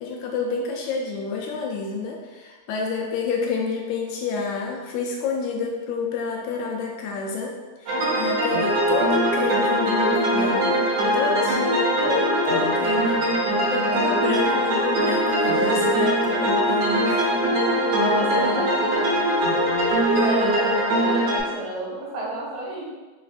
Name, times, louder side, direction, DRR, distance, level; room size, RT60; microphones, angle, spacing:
voice 1, 0.0-7.5 7.8-10.8 11.1-13.2 13.7-17.3, left 5 dB, 85° left, -1 dB, 2.1 m, -29 dB
sound 1, 7.9-21.4, right 1 dB, 60° right, 1.9 m, -21 dB
voice 2, 15.5-15.8 17.9-19.3 20.1-22.9, right 2 dB, 80° right, -4 dB, 2.4 m, -29 dB
4.3 x 4.1 x 2.5 m, 1.3 s
omnidirectional pair, 3.4 m